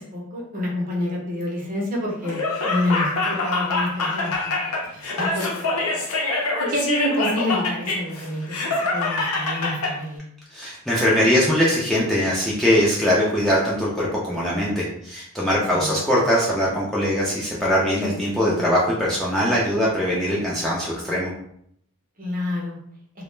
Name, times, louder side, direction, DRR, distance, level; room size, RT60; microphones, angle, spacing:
voice 1, 0.0-4.3 4.6-10.2 15.7-16.0 22.2-22.8, left 1 dB, 40° right, -2 dB, 0.6 m, -28 dB
Laughter, 2.2-9.9, left 3 dB, 85° left, 0.6 m, -25 dB
voice 2, 10.5-21.3, equal, ahead, -7 dB, 0.4 m, -21 dB
2.2 x 2.1 x 3.1 m, 0.70 s
head